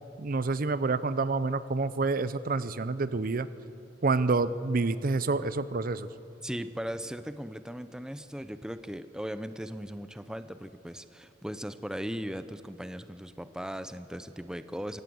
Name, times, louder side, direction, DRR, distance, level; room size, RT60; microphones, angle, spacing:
voice 1, 0.2-3.5 4.0-6.1, right 3 dB, 50° right, 15 dB, 0.6 m, -28 dB
voice 2, 6.4-15.0, equal, 5° right, 11 dB, 0.6 m, -38 dB
24.0 x 17.0 x 7.8 m, 2.8 s
head